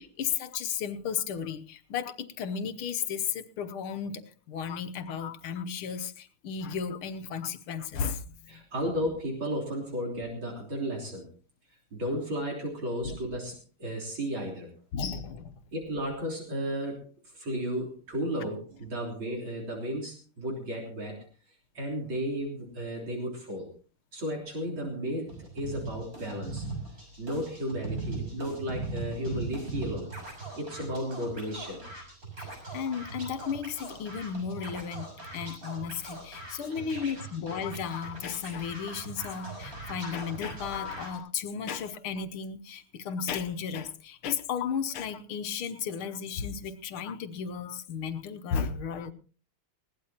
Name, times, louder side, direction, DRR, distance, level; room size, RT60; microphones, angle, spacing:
voice 1, 0.0-8.6 13.0-13.2 14.9-15.5 32.4-49.1, left 7 dB, 75° left, 1.9 m, -34 dB
voice 2, 8.5-11.3 11.9-14.7 15.7-21.2 21.7-23.7 24.1-26.6 27.2-30.1 30.6-31.8 36.6-36.9, equal, 65° right, 4.3 m, -34 dB
Scratching (performance technique), 25.3-41.2, right 3 dB, 40° right, 6.7 m, -40 dB
20.5 x 17.0 x 2.9 m
omnidirectional pair, 2.4 m